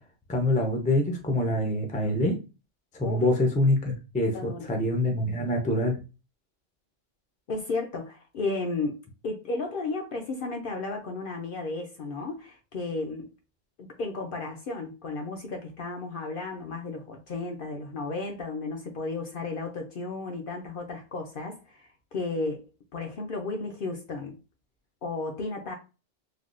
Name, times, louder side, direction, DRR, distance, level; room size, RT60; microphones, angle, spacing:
voice 1, 0.3-2.3 2.9-5.9, left 1 dB, 10° left, 0.3 m, -25 dB
voice 2, 4.3-4.7 7.5-13.3 14.0-22.6 22.9-24.4 25.0-25.7, left 3 dB, 60° left, 0.6 m, -33 dB
3.3 x 2.2 x 2.5 m
omnidirectional pair, 1.2 m